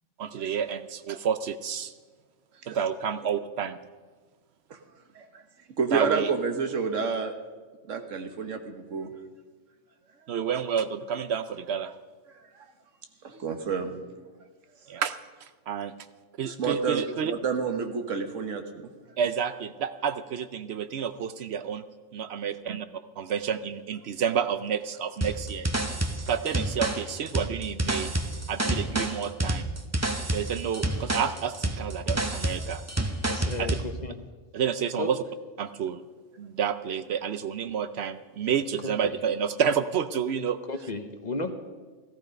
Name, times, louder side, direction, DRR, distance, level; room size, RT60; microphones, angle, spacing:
voice 1, 0.2-1.9 2.7-3.8 5.9-6.3 10.3-11.9 14.9-15.9 16.4-17.3 19.2-21.8 22.1-22.9 23.2-25.7 26.2-28.1 28.5-29.6 30.3-32.8 33.6-33.7 34.5-35.2 35.6-36.0 36.4-40.6, right 7 dB, 65° right, 12 dB, 0.8 m, -29 dB
voice 2, 5.8-7.3 7.9-9.1 13.2-14.2 16.4-18.9, right 5 dB, 90° right, 7 dB, 1.6 m, -29 dB
sound 1, 25.2-33.9, right 1 dB, 15° right, 0.7 m, -29 dB
voice 3, 33.3-34.2 35.0-35.1 38.8-39.1 40.7-41.5, left 3 dB, 40° left, 7 dB, 0.9 m, -34 dB
15.0 x 14.0 x 5.2 m, 1.4 s
omnidirectional pair, 1.3 m